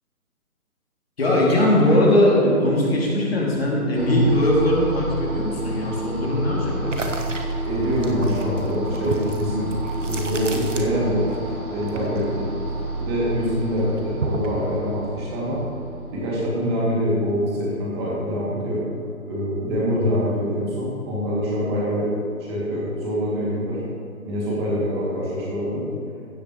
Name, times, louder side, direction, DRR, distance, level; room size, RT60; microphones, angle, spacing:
voice 1, 1.2-7.0, left 1 dB, 45° left, -3 dB, 2.6 m, -20 dB
sound 1, 4.0-18.1, right 2 dB, 85° right, 2.6 m, -30 dB
sound 2, 6.8-11.4 11.6-13.3 13.6-14.6, right 2 dB, 55° right, 1.1 m, -32 dB
voice 2, 7.7-9.7 10.0-12.5 13.0-15.6 16.1-18.8 19.3-22.1 22.5-23.8 24.2-25.8, equal, 20° right, -6 dB, 2.3 m, -25 dB
16.0 x 8.3 x 3.0 m, 2.7 s
figure-of-eight pair, 145°, 44 cm